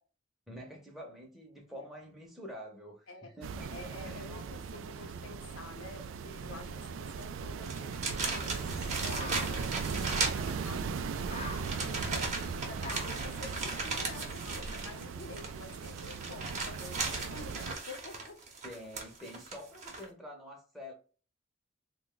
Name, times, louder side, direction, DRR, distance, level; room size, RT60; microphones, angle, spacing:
voice 1, 0.5-3.7 4.0-4.6 18.6-20.9, equal, ahead, 0.7 m, -47 dB
sound 1, 3.4-17.7, right 5 dB, 80° right, 0.3 m, -39 dB
voice 2, 3.7-12.3 12.6-18.4, left 3 dB, 85° left, 0.8 m, -49 dB
sound 2, 7.1-7.2 7.6-11.0 11.6-20.1, right 3 dB, 40° right, 0.8 m, -37 dB
sound 3, 8.1-14.4, left 3 dB, 35° left, 0.5 m, -48 dB
3.4 x 2.2 x 3.8 m
head